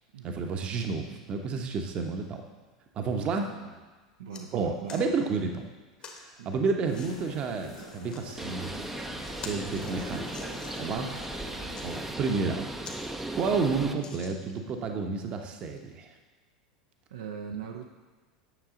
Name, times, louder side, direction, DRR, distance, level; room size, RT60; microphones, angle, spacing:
voice 1, 0.2-2.4 2.9-3.5 4.5-5.7 6.1-8.7 9.1-10.3 10.8-11.1 11.8-12.6 13.3-16.1, right 4 dB, 35° right, 4 dB, 1.0 m, -30 dB
voice 2, 3.4-3.7 4.2-5.1 6.4-6.6 11.5-11.8 17.1-17.9, right 6 dB, 65° right, 2 dB, 0.7 m, -41 dB
sound 1, 4.2-4.4 4.9-5.1 6.0-6.2 6.9-7.1 7.9-8.4 8.8-8.9 9.2-10.9 11.5-11.9 12.4-12.5 12.8-13.0 13.3-13.4 14.0-14.7 15.3-15.4, left 4 dB, 35° left, 1.4 m, -46 dB
sound 2, 6.9-12.4, left 2 dB, 75° left, 2.4 m, -46 dB
Bird, 8.4-13.9, right 1 dB, 5° right, 0.7 m, -37 dB
9.2 x 6.5 x 3.8 m, 1.3 s
figure-of-eight pair, 80°, 3 cm